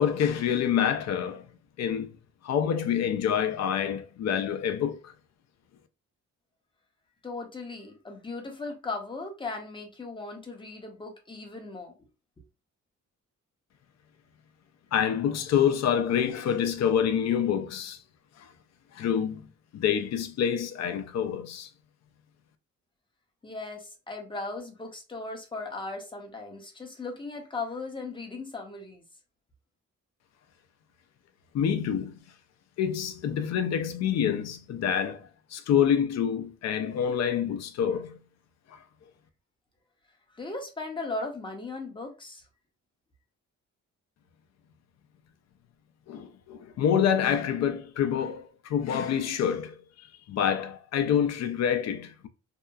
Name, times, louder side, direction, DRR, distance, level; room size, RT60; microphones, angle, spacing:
voice 1, 0.0-1.5 1.8-2.2 2.4-5.1 14.9-18.0 18.4-18.5 18.9-21.7 31.5-32.2 32.8-38.2 38.7-38.8 46.1-52.3, left 8 dB, 60° left, 0.5 m, -27 dB
voice 2, 7.2-11.9 23.4-29.0 40.3-42.4, left 3 dB, 15° left, 0.6 m, -37 dB
2.8 x 2.3 x 2.2 m
cardioid pair, 135°, 29 cm